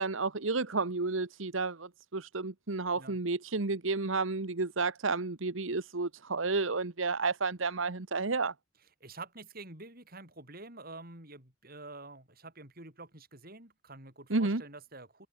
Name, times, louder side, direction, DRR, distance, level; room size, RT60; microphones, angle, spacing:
voice 1, 0.0-8.5 14.3-14.6, right 3 dB, 75° right, 1.3 m, -31 dB
voice 2, 9.0-15.3, right 2 dB, 45° right, 7.8 m, -48 dB
head